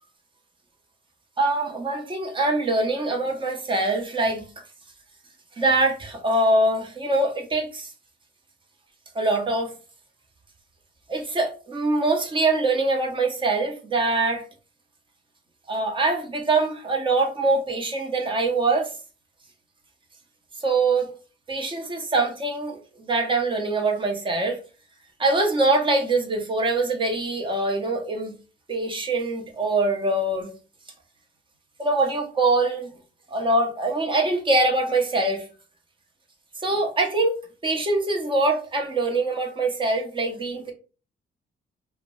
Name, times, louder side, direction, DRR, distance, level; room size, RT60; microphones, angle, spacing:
voice 1, 1.4-4.4 5.6-7.9 9.1-9.7 11.1-14.4 15.7-18.9 20.6-21.1 21.5-22.8 23.1-24.6 25.2-28.3 28.7-30.5 31.8-32.9 33.3-35.4 36.6-37.4 37.6-40.7, right 2 dB, 25° right, 0.9 m, -23 dB
2.5 x 2.1 x 3.7 m
cardioid pair, 90°, 20 cm